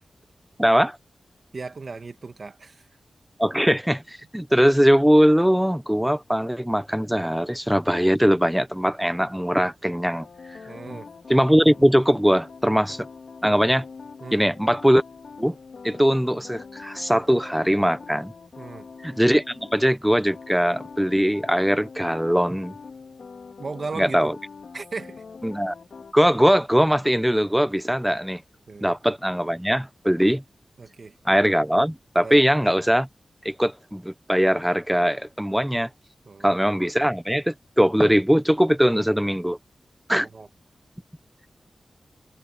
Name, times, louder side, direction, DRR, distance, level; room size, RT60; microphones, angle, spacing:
voice 1, 0.6-1.0 3.4-10.3 10.9-11.0 11.3-13.1 13.4-13.8 14.3-15.0 15.4-15.6 15.8-18.3 19.0-22.7 24.0-24.3 25.4-25.7 26.1-28.4 28.8-30.4 31.3-33.1 33.4-35.9 36.4-39.6 40.1-40.3, equal, 5° right, 0.9 m, -21 dB
voice 2, 1.5-2.9 10.7-11.1 14.2-14.5 18.6-18.9 23.6-24.3 24.7-25.2 28.7-28.9 30.8-31.2 32.2-32.5 36.2-36.6 40.1-40.5, right 4 dB, 45° right, 1.9 m, -36 dB
sound 1, 10.1-19.8 20.2-26.1, left 5 dB, 65° left, 3.2 m, -43 dB
wide cardioid pair, 150°, 0 cm